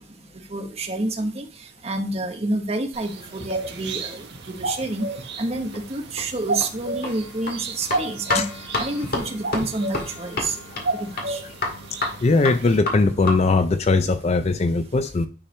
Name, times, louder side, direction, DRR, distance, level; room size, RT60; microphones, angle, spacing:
voice 1, 0.5-1.5 1.8-5.0 5.4-10.5 10.9-11.4, right 2 dB, 35° right, 4 dB, 1.0 m, -28 dB
sound 1, 2.9-12.8, right 2 dB, 65° right, 1.3 m, -32 dB
sound 2, 5.6-13.6, left 2 dB, 55° left, 1.9 m, -31 dB
voice 2, 12.2-15.3, left 3 dB, 35° left, 9 dB, 0.4 m, -20 dB
9.8 x 4.6 x 3.2 m, 0.36 s
head